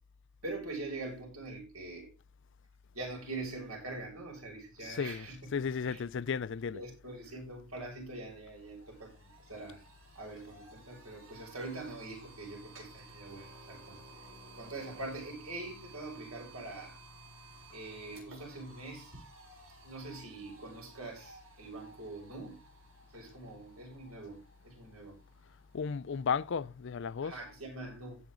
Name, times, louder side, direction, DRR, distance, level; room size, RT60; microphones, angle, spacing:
voice 1, 0.4-2.1 2.9-6.0 6.7-9.1 9.4-9.8 10.1-14.0 14.5-17.0 17.7-19.2 19.8-22.6 23.1-24.4 24.6-25.1 27.2-28.2, right 2 dB, 85° right, 6.6 m, -43 dB
voice 2, 4.8-5.3 5.5-6.8 25.7-27.3, left 6 dB, 55° left, 0.4 m, -34 dB
sound 1, 7.7-7.8 8.1-27.2, right 2 dB, 65° right, 7.0 m, -56 dB
16.5 x 5.9 x 3.9 m
head